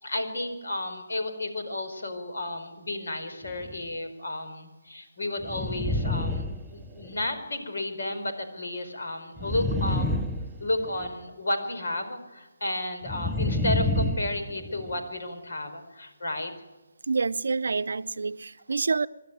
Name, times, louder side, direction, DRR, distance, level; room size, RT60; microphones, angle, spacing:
voice 1, 0.0-6.5 6.7-10.1 10.6-16.5, left 1 dB, 70° left, 4.5 m, -32 dB
sound 1, 3.4-3.8 5.4-7.3 9.4-11.1 13.0-15.0, left 2 dB, 5° right, 0.8 m, -29 dB
voice 2, 17.1-19.1, right 4 dB, 70° right, 0.6 m, -27 dB
25.5 x 12.0 x 9.1 m
figure-of-eight pair, 150°, 0 cm